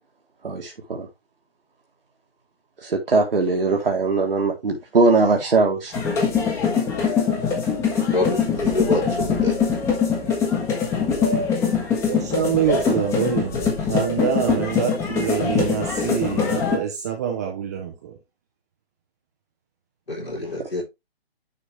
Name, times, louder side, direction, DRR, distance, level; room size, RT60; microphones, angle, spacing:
voice 1, 0.4-1.1 2.8-5.9, right 3 dB, 65° right, 1.7 m, -20 dB
sound 1, 5.9-16.8, left 6 dB, 10° left, 1.1 m, -23 dB
voice 2, 8.1-9.6 20.1-20.8, left 2 dB, 80° left, 3.8 m, -26 dB
voice 3, 12.0-18.2, right 9 dB, 15° right, 0.7 m, -25 dB
10.0 x 4.2 x 3.2 m
figure-of-eight pair, 140°, 30 cm